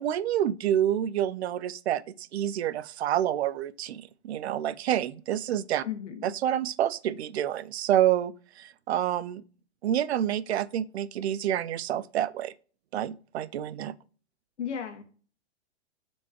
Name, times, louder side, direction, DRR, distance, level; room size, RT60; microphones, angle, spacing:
voice 1, 0.0-5.8 6.2-9.4 9.8-12.5 12.9-13.9, right 11 dB, 70° right, 0.5 m, -28 dB
voice 2, 5.8-6.3 14.6-15.0, left 8 dB, 90° left, 1.7 m, -34 dB
7.3 x 4.5 x 2.8 m
hypercardioid pair, 175°, 34 cm